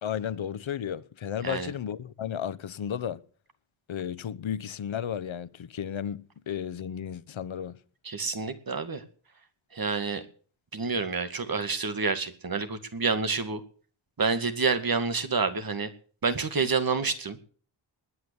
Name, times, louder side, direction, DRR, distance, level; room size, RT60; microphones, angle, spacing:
voice 1, 0.0-3.2 3.9-7.8, left 9 dB, 80° left, 1.0 m, -33 dB
voice 2, 8.0-9.0 9.7-10.2 10.7-13.6 14.2-15.9 16.2-17.4, right 4 dB, 50° right, 2.2 m, -28 dB
20.5 x 9.6 x 7.0 m
wide cardioid pair, 135°, 46 cm